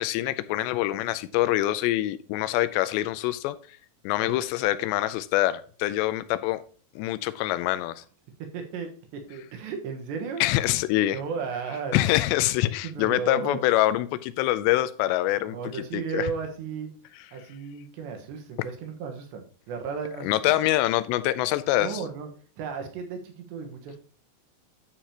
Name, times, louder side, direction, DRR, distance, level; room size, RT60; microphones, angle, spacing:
voice 1, 0.0-3.6 4.0-6.6 7.0-8.0 10.4-11.2 11.9-16.3 20.2-22.0, left 15 dB, 85° left, 13 dB, 2.8 m, -25 dB
voice 2, 8.4-10.4 11.1-12.0 12.8-13.6 15.5-16.9 17.3-20.6 21.8-22.3 22.6-24.0, right 5 dB, 80° right, 4 dB, 3.6 m, -34 dB
10.5 x 7.3 x 2.9 m, 0.41 s
omnidirectional pair, 5.0 m